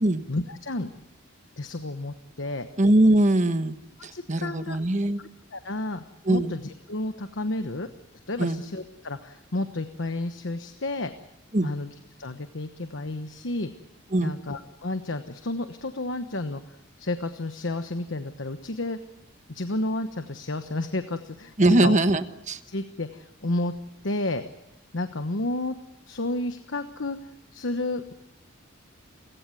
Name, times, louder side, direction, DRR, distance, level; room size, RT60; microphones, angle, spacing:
voice 1, 0.3-0.9 1.6-2.7 4.0-4.8 5.2-7.9 8.3-11.1 11.6-13.7 14.2-19.0 19.5-22.0 22.7-23.7 24.0-24.4 24.9-25.8 26.1-27.2 27.5-28.1, left 2 dB, 65° left, 8 dB, 1.2 m, -31 dB
voice 2, 2.8-3.7 4.0-5.2 6.3-6.5 8.4-8.6 11.5-11.7 14.1-14.3 21.6-22.6, right 1 dB, 35° right, 10 dB, 1.2 m, -21 dB
29.5 x 16.0 x 9.2 m, 0.92 s
head